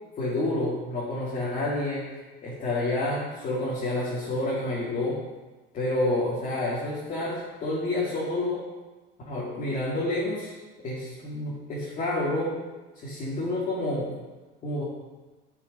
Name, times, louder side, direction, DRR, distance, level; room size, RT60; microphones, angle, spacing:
voice 1, 0.2-2.0 2.4-5.2 5.7-8.6 9.3-10.5 10.8-12.6 12.9-14.1 14.6-14.8, left 2 dB, 40° left, -7 dB, 2.2 m, -29 dB
11.0 x 5.6 x 5.3 m, 1.2 s
cardioid pair, 165°, 21 cm